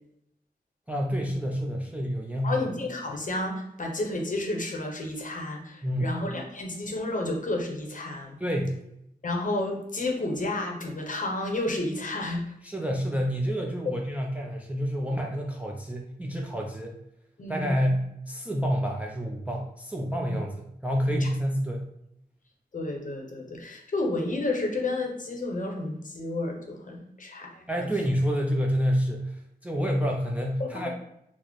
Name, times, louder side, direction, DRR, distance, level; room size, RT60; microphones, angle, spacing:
voice 1, 0.9-2.6 5.8-6.1 8.4-8.8 12.6-17.0 17.5-21.9 27.7-30.9, equal, 10° right, 0 dB, 0.4 m, -28 dB
voice 2, 2.4-8.4 9.2-12.5 17.4-17.9 20.3-20.4 21.1-21.3 22.7-27.6 30.6-30.9, left 2 dB, 55° left, 1 dB, 0.7 m, -31 dB
4.0 x 2.0 x 3.0 m, 0.77 s
wide cardioid pair, 90°, 16 cm